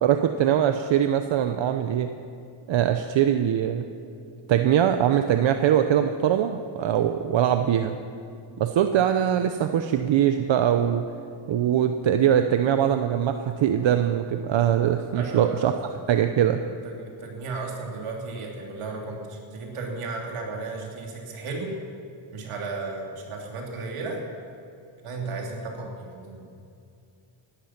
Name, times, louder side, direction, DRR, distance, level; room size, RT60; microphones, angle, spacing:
voice 1, 0.0-2.1 2.7-3.9 4.5-8.0 8.6-11.1 11.5-16.6, right 10 dB, 65° right, 7 dB, 0.8 m, -22 dB
voice 2, 15.1-15.9 16.8-21.7 22.3-24.2 25.0-26.5, right 3 dB, 80° right, 0 dB, 3.0 m, -34 dB
16.5 x 12.0 x 5.9 m, 2.6 s
cardioid pair, 100°, 50 cm